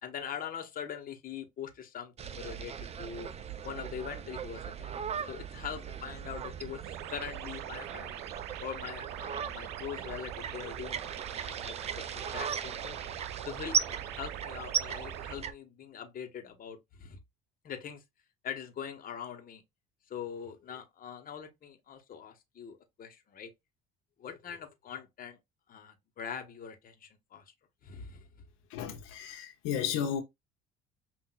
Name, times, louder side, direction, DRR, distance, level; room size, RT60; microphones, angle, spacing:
voice 1, 0.0-3.3 3.6-4.9 5.3-8.2 8.6-13.1 13.4-17.2 17.6-18.0 18.4-19.6 20.1-23.5 24.2-25.4 25.7-27.4 27.8-28.4, left 8 dB, 45° left, 1.0 m, -42 dB
sound 1, 2.2-15.5, right 7 dB, 30° right, 0.5 m, -38 dB
sound 2, 6.8-15.4, right 12 dB, 90° right, 0.5 m, -43 dB
voice 2, 28.7-30.2, left 8 dB, 80° left, 0.7 m, -33 dB
5.6 x 2.5 x 2.3 m
cardioid pair, 100°, 21 cm